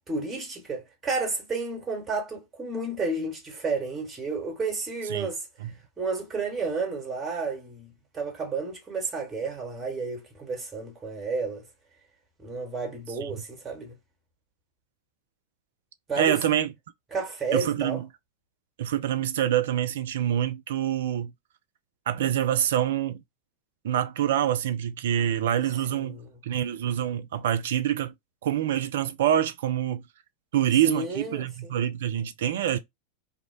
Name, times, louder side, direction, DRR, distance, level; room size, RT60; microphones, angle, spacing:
voice 1, 0.1-5.4 6.0-11.6 12.4-14.0 16.1-16.4 17.1-18.0 25.9-26.3 30.8-31.7, right 4 dB, 15° right, 0.9 m, -31 dB
voice 2, 16.2-16.7 17.5-18.1 18.8-21.3 22.1-23.2 23.8-26.2 26.4-28.1 28.4-30.0 30.5-32.8, right 11 dB, 60° right, 0.3 m, -26 dB
2.6 x 2.1 x 2.4 m
figure-of-eight pair, 90°, 0 cm